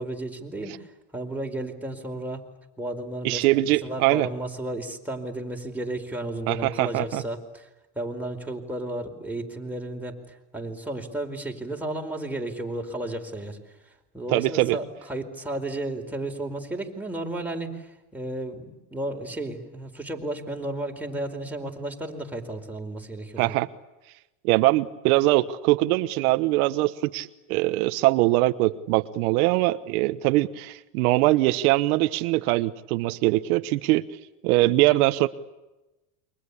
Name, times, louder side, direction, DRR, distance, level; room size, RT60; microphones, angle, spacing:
voice 1, 0.0-2.4 2.8-7.7 7.9-13.6 13.8-23.5, right 1 dB, 5° right, 1 dB, 4.5 m, -33 dB
voice 2, 3.2-4.3 6.5-7.2 14.3-14.8 23.4-23.7 24.4-34.0 34.4-35.3, right 18 dB, 80° right, 10 dB, 1.2 m, -22 dB
29.0 x 24.0 x 8.4 m, 1.0 s
supercardioid pair, 115°, 43 cm